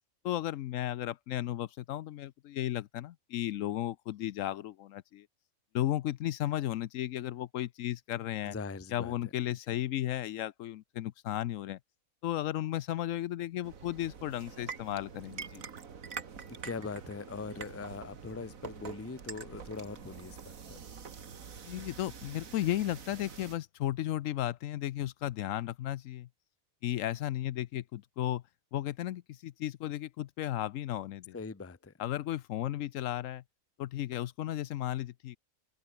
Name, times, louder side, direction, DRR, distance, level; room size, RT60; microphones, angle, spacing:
voice 1, 0.2-5.3 5.7-8.5 8.9-11.8 12.2-15.6 21.7-26.3 26.8-28.4 28.7-31.3 32.0-33.4 33.8-35.4, left 13 dB, 70° left, 0.9 m, -34 dB
voice 2, 8.4-9.3 9.7-9.8 16.5-20.8 31.3-31.9, left 4 dB, 15° left, 0.5 m, -41 dB
sound 1, 13.6-23.6, right 6 dB, 75° right, 2.0 m, -46 dB
open air
omnidirectional pair, 1.5 m